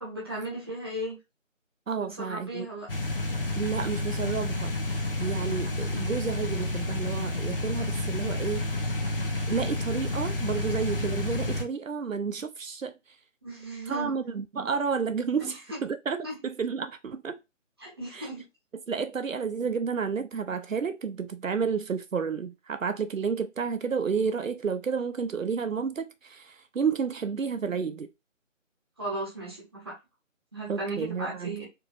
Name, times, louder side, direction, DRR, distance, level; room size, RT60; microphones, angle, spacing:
voice 1, 0.0-1.2 2.0-2.9 13.4-14.1 15.4-15.8 16.2-16.4 17.8-18.5 29.0-29.9 30.5-31.7, right 1 dB, 20° right, 1.2 m, -36 dB
voice 2, 1.9-2.7 3.6-4.7 5.2-8.6 9.5-13.0 13.9-15.5 15.8-17.4 18.1-18.3 18.9-28.1 30.7-31.6, right 6 dB, 85° right, 0.6 m, -31 dB
sound 1, 2.9-11.6, left 2 dB, 45° left, 0.7 m, -30 dB
4.6 x 3.0 x 2.4 m
figure-of-eight pair, 165°, 38 cm